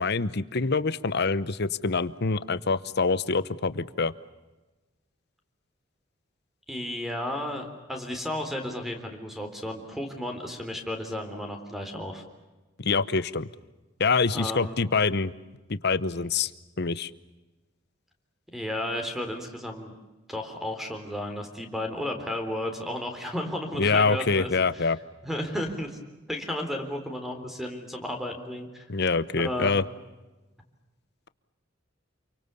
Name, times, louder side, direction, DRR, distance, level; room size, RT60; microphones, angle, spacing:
voice 1, 0.0-4.1 12.8-13.5 14.0-15.3 15.7-16.5 16.8-17.1 23.8-25.0 28.9-29.8, left 4 dB, 60° left, 16 dB, 1.0 m, -25 dB
voice 2, 6.7-12.2 14.3-14.7 18.5-19.9 20.3-24.9 25.2-26.0 26.3-28.8 29.4-29.7, left 1 dB, ahead, 5 dB, 3.9 m, -33 dB
28.5 x 24.0 x 7.0 m, 1.1 s
head